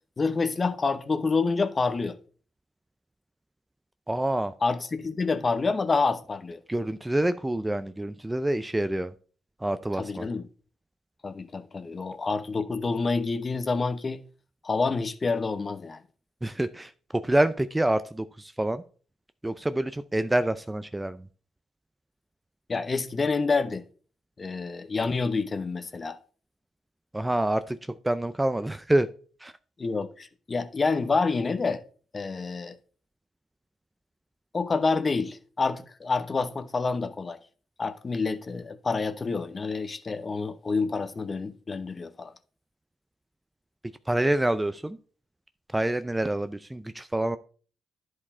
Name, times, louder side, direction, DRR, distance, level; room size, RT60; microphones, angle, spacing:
voice 1, 0.2-2.2 4.6-6.6 10.0-10.4 11.2-14.2 14.6-16.0 22.7-23.8 24.4-26.2 29.8-31.8 32.1-32.7 34.5-37.4 37.8-42.3, left 4 dB, 30° left, 1.0 m, -28 dB
voice 2, 4.1-4.5 6.7-9.1 9.6-10.3 16.4-18.8 19.4-21.3 27.1-27.8 28.0-29.1 29.4-29.5 44.1-45.0 45.7-47.4, right 1 dB, 10° right, 0.4 m, -27 dB
11.0 x 4.8 x 4.3 m
cardioid pair, 90°, 0 cm